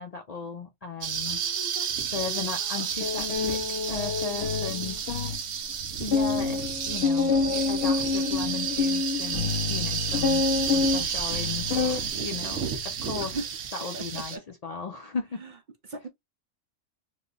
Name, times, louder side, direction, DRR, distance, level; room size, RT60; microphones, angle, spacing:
voice 1, 0.0-1.4 2.1-3.6 3.9-5.5 6.0-13.4 13.7-15.4, left 5 dB, 85° left, 0.3 m, -36 dB
sound 1, 1.0-14.4, right 7 dB, 70° right, 1.1 m, -32 dB
voice 2, 1.3-2.9 13.2-13.5 13.9-14.4 15.4-15.5 15.8-16.1, right 2 dB, 50° right, 0.6 m, -40 dB
sound 2, 3.0-5.4 5.7-5.8 6.1-12.1 12.5-12.9, left 4 dB, 60° left, 0.8 m, -27 dB
3.1 x 2.2 x 3.8 m
omnidirectional pair, 1.3 m